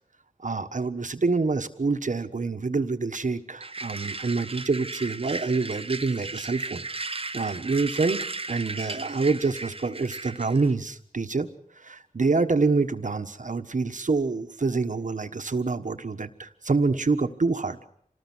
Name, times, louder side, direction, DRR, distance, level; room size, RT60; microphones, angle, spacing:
voice 1, 0.4-6.9 7.3-11.5 11.8-17.8, right 3 dB, 65° right, 9 dB, 1.4 m, -26 dB
sound 1, 3.6-10.7, right 3 dB, 45° right, 0.9 m, -36 dB
27.0 x 19.5 x 6.2 m, 0.64 s
wide cardioid pair, 75°, 14 cm